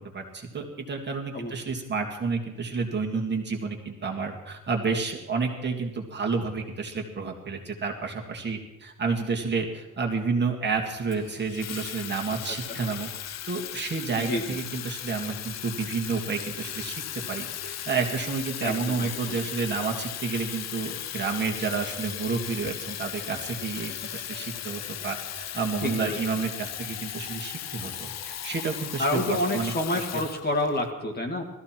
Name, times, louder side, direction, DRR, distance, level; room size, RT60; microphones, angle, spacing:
voice 1, 0.0-13.1 13.5-17.0 17.3-30.2, right 4 dB, 30° right, 1 dB, 2.0 m, -30 dB
Water tap faucet / Fill (with liquid), 11.1-30.9, left 10 dB, 50° left, 0.6 m, -37 dB
voice 2, 14.2-14.6 18.6-19.4 25.8-26.2 29.0-31.4, left 1 dB, 30° left, 3 dB, 2.1 m, -28 dB
19.0 x 14.0 x 4.5 m, 0.97 s
cardioid pair, 145°, 33 cm